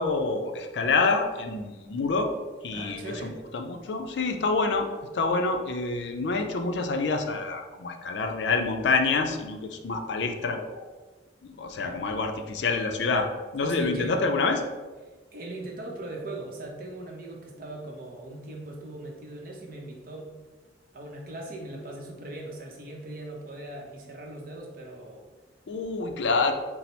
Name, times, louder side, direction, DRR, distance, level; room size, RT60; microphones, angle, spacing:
voice 1, 0.0-2.3 2.6-4.9 5.1-10.9 11.4-13.3 13.5-14.6 25.7-26.5, left 3 dB, 70° left, 5 dB, 0.4 m, -27 dB
voice 2, 2.7-3.4 11.7-12.0 13.6-14.2 15.3-20.3 20.9-25.2, right 2 dB, 50° right, -1 dB, 0.8 m, -39 dB
4.1 x 2.0 x 4.3 m, 1.3 s
head